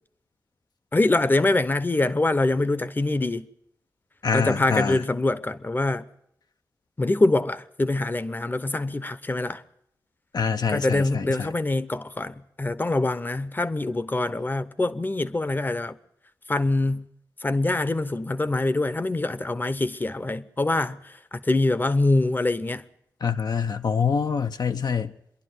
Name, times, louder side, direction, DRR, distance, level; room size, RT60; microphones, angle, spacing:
voice 1, 0.9-3.5 4.3-6.1 7.0-9.6 10.7-16.0 16.5-17.1 17.4-22.8, left 2 dB, 30° left, 0.8 m, -24 dB
voice 2, 4.2-5.0 10.3-11.5 23.2-25.1, left 6 dB, 75° left, 0.8 m, -25 dB
25.5 x 11.5 x 9.5 m
wide cardioid pair, 90°, 7 cm